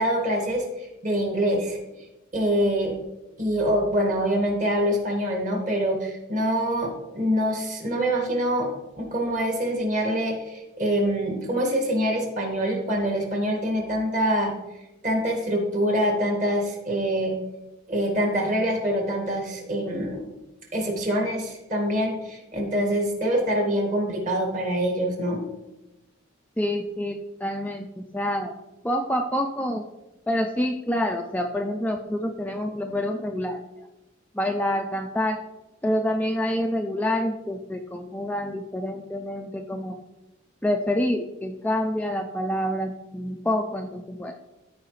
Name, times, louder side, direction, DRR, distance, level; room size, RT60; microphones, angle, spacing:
voice 1, 0.0-1.8 2.3-2.9 3.4-8.7 9.0-14.5 15.0-17.3 17.9-20.3 20.7-25.4, equal, 40° right, 0 dB, 1.8 m, -25 dB
voice 2, 26.6-28.5 28.8-29.8 30.3-33.9 34.3-35.4 35.8-40.0 40.6-44.4, left 1 dB, 5° left, 3 dB, 0.3 m, -27 dB
14.0 x 4.8 x 3.2 m, 0.99 s
head